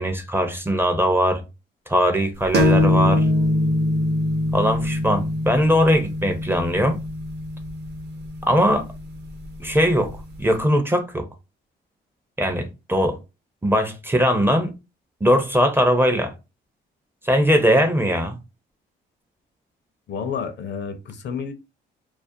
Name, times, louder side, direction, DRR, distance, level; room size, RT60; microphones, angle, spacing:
voice 1, 0.0-1.4 1.9-3.3 4.5-7.0 8.5-8.9 9.6-11.3 12.4-13.2 13.6-14.7 15.2-16.3 17.2-18.4, equal, 10° right, 0.4 m, -20 dB
sound 1, 2.5-10.0, left 1 dB, 55° right, 0.7 m, -23 dB
voice 2, 20.1-21.5, left 6 dB, 60° left, 0.5 m, -30 dB
2.4 x 2.0 x 2.6 m
cardioid pair, 90°, 20 cm